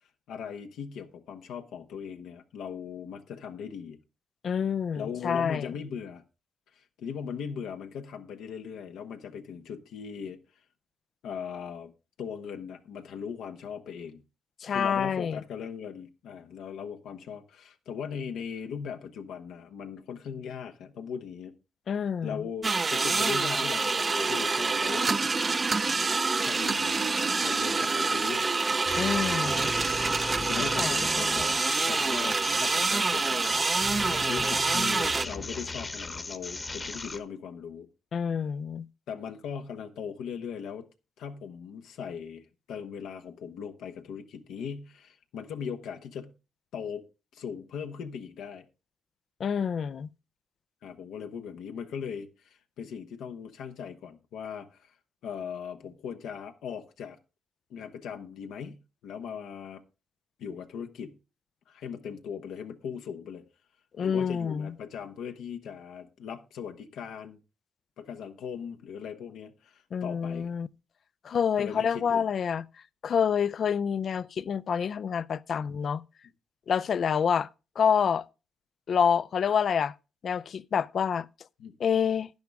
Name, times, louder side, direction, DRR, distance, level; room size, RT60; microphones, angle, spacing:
voice 1, 0.3-4.0 4.9-6.2 6.7-10.4 11.2-11.9 12.2-14.2 14.7-21.5 22.2-25.4 26.4-28.5 30.4-33.4 34.1-37.9 39.1-40.9 41.2-46.3 46.7-47.0 47.3-48.7 50.8-54.9 55.2-57.2 57.7-59.8 60.4-61.2 61.7-63.4 64.0-67.4 68.0-70.5 71.6-72.2 81.6-81.7, left 7 dB, 80° left, 1.2 m, -39 dB
voice 2, 4.4-5.7 14.6-15.4 21.9-22.5 29.0-29.7 30.6-31.0 38.1-38.9 49.4-50.1 64.0-64.7 69.9-70.7 71.2-72.6 73.0-76.0 76.7-77.5 77.8-78.3 78.9-79.9 80.2-81.3 81.8-82.3, left 7 dB, 55° left, 0.4 m, -27 dB
sound 1, 22.6-35.2, right 4 dB, 30° right, 0.6 m, -27 dB
sound 2, 28.9-37.2, left 3 dB, 25° left, 1.1 m, -37 dB
10.5 x 10.5 x 3.5 m
cardioid pair, 90°, 0 cm